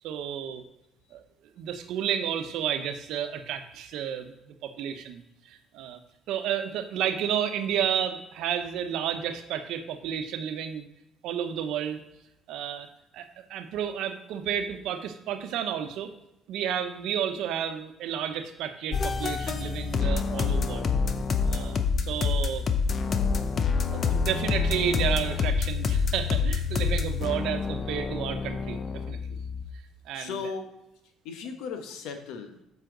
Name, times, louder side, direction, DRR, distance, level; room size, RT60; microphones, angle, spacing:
voice 1, 0.0-0.6 1.1-1.2 1.6-6.0 6.3-10.9 11.2-12.0 12.5-12.9 13.1-16.1 16.5-20.8 21.4-22.6 23.1-23.2 23.9-28.8 29.1-29.2 30.0-30.3, right 9 dB, 75° right, 8 dB, 0.8 m, -31 dB
sound 1, 18.9-29.7, left 5 dB, 40° left, 0.7 m, -27 dB
voice 2, 30.1-30.7 31.2-32.6, left 5 dB, 85° left, 6 dB, 1.0 m, -36 dB
7.7 x 5.7 x 3.9 m, 0.89 s
cardioid pair, 105°, 0 cm